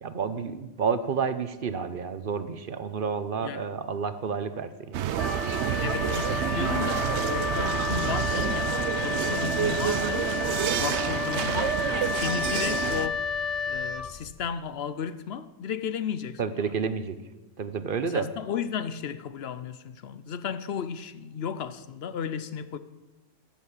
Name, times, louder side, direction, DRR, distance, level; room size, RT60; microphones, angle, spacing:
voice 1, 0.0-5.1 16.4-17.2 17.6-18.3, right 6 dB, 55° right, 0.9 m, -30 dB
sound 1, 4.9-13.1, right 10 dB, 85° right, 0.9 m, -28 dB
Wind instrument woodwind instrument, 5.1-14.6, left 6 dB, 45° left, 0.5 m, -31 dB
voice 2, 5.8-10.3 10.8-11.8 12.1-13.2 13.7-16.6 18.0-22.8, left 7 dB, 65° left, 0.9 m, -34 dB
14.5 x 7.2 x 8.3 m
omnidirectional pair, 1.1 m